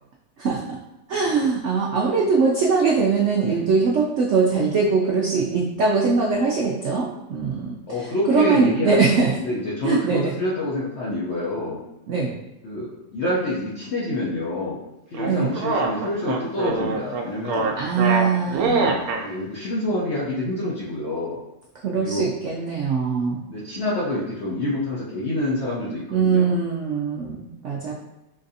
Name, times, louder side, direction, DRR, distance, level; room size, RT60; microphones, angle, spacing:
voice 1, 0.4-0.8 1.1-9.3 9.8-10.3 12.1-12.3 15.3-15.5 17.8-19.0 21.8-23.4 26.1-27.9, right 4 dB, 90° right, -3 dB, 0.6 m, -22 dB
voice 2, 7.9-11.8 12.6-14.8 15.1-17.7 19.2-21.4 21.9-22.2 23.5-26.6 27.8-27.9, left 1 dB, 65° left, -6 dB, 0.7 m, -27 dB
sound 1, 15.1-19.2, right 3 dB, 70° right, 0.9 m, -24 dB
3.9 x 2.5 x 2.6 m, 0.97 s
omnidirectional pair, 1.8 m